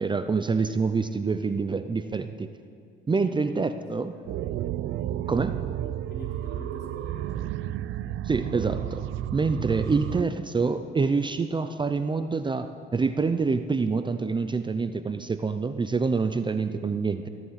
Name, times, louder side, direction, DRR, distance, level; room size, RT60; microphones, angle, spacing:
voice 1, 0.0-2.5 3.1-4.1 5.3-5.6 8.2-17.3, right 4 dB, 25° right, 10 dB, 0.5 m, -26 dB
voice 2, 3.1-3.8 4.0-4.3 6.1-7.5 16.0-16.4, left 1 dB, 55° left, -3 dB, 4.2 m, -46 dB
sound 1, 4.3-10.2, right 12 dB, 80° right, 0.5 m, -32 dB
16.0 x 10.5 x 5.8 m, 2.5 s
cardioid pair, 90°, 20 cm